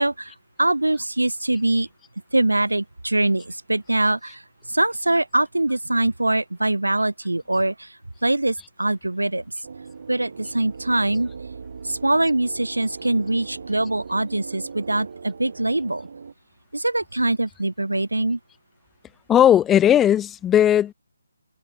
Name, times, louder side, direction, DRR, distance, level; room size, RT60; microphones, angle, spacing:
voice 1, 0.0-1.9 2.3-9.5 10.1-11.3 11.8-16.1 16.7-18.4, right 2 dB, 85° right, 0.3 m, -23 dB
sound 1, 9.6-16.3, right 5 dB, 55° right, 1.2 m, -39 dB
voice 2, 19.3-20.9, left 10 dB, 10° left, 0.6 m, -16 dB
figure-of-eight pair, 150°, 0 cm